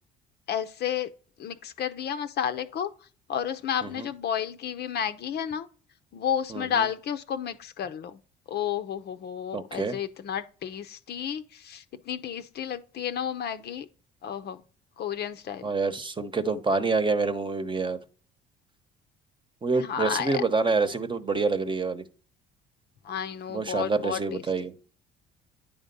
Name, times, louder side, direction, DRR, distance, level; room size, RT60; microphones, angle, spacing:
voice 1, 0.5-1.1 1.4-2.9 3.3-5.7 6.1-8.2 8.5-13.9 14.2-14.6 15.0-15.7 19.8-20.4 23.0-24.4, left 8 dB, 55° left, 0.7 m, -31 dB
voice 2, 6.5-6.8 9.5-10.0 15.6-18.0 19.6-22.1 23.5-24.7, right 3 dB, 25° right, 1.0 m, -27 dB
9.4 x 3.6 x 5.4 m
supercardioid pair, 70°, 20 cm